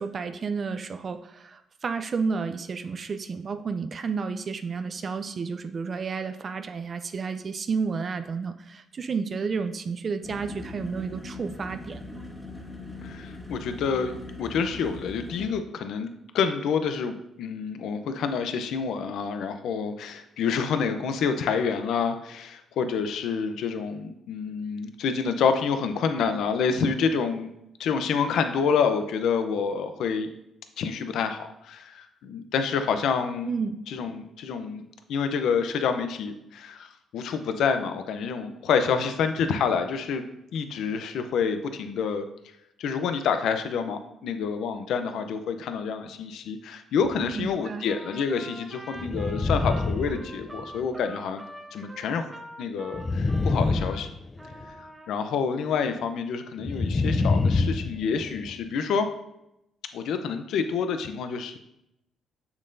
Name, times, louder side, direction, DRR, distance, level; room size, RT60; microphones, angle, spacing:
voice 1, 0.0-12.2 33.5-33.8 47.4-47.9, right 5 dB, 45° right, 9 dB, 0.4 m, -31 dB
sound 1, 10.2-15.5, left 2 dB, 15° left, 1.5 m, -40 dB
voice 2, 13.0-16.1 16.3-27.5 27.8-30.3 30.8-33.5 33.9-40.2 40.5-42.3 42.8-51.4 51.7-52.3 52.6-54.1 54.7-59.1 59.9-61.6, left 6 dB, 75° left, 8 dB, 0.6 m, -28 dB
sound 2, 47.0-47.4 49.0-50.8 52.9-54.6 56.6-58.5, left 3 dB, 30° left, 0.5 m, -26 dB
Trumpet, 47.9-54.1 54.4-55.1, right 1 dB, 15° right, 0.9 m, -44 dB
7.0 x 6.6 x 2.6 m, 0.84 s
cardioid pair, 90°, 0 cm